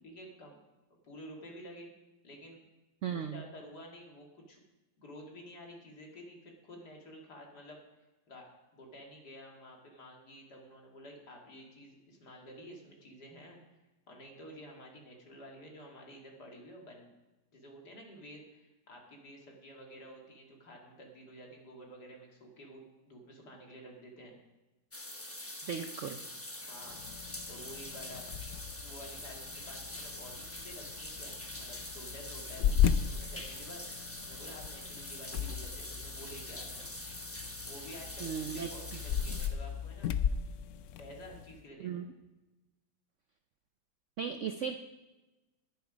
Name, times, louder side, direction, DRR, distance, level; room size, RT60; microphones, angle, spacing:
voice 1, 0.0-0.6 1.0-1.9 2.2-2.6 3.1-4.6 5.0-7.8 8.3-13.6 14.1-17.1 17.5-24.4 26.6-27.0 27.5-28.3 28.8-36.9 37.7-40.1 41.0-42.0, equal, 65° left, -1 dB, 3.0 m, -51 dB
voice 2, 3.0-3.4 25.6-26.2 38.2-39.0 41.8-42.1 44.2-44.8, right 7 dB, 65° right, 7 dB, 0.7 m, -37 dB
sound 1, 24.9-39.5, left 1 dB, 10° left, 0.8 m, -44 dB
sound 2, 26.8-41.6, left 8 dB, 80° left, 0.6 m, -36 dB
20.0 x 7.1 x 5.1 m, 1.1 s
omnidirectional pair, 1.9 m